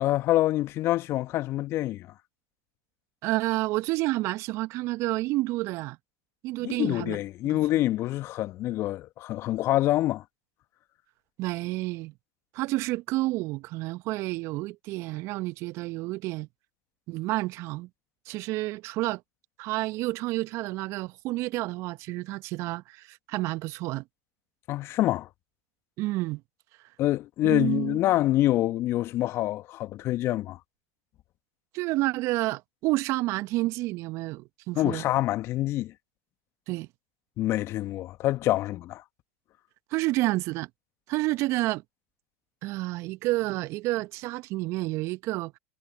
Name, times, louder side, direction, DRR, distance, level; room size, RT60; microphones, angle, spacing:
voice 1, 0.0-2.1 6.6-10.2 24.7-25.3 27.0-30.6 34.8-35.9 37.4-39.0, left 15 dB, 45° left, 1.8 m, -26 dB
voice 2, 3.2-6.0 6.4-7.2 7.4-7.6 11.4-12.1 12.5-16.5 17.1-17.9 18.3-19.2 19.6-24.0 26.0-26.4 27.4-28.0 31.7-35.0 36.7-36.9 39.9-40.7 41.1-41.8 42.6-45.5, right 19 dB, 50° right, 1.4 m, -29 dB
hypercardioid pair, 80°, 6 cm